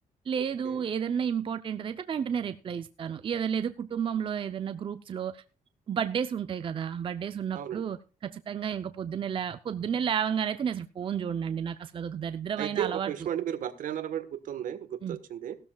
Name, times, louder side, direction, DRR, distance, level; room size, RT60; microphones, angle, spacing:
voice 1, 0.3-5.4 5.9-13.1 15.0-15.2, right 8 dB, 35° right, 0.6 m, -31 dB
voice 2, 12.6-15.6, right 10 dB, 70° right, 1.3 m, -34 dB
17.5 x 13.0 x 2.3 m
cardioid pair, 130°, 14 cm